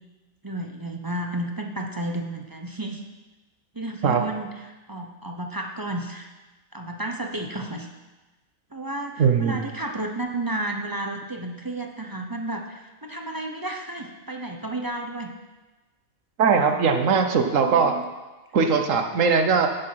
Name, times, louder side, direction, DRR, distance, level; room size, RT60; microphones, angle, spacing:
voice 1, 0.4-3.0 3.7-6.3 6.7-7.9 8.7-15.3 17.4-18.0 18.5-18.6, right 1 dB, 20° right, 2 dB, 0.6 m, -32 dB
voice 2, 9.2-9.6 16.4-18.0 18.5-19.7, right 5 dB, 70° right, 5 dB, 1.3 m, -20 dB
8.9 x 8.8 x 5.8 m, 1.2 s
omnidirectional pair, 1.4 m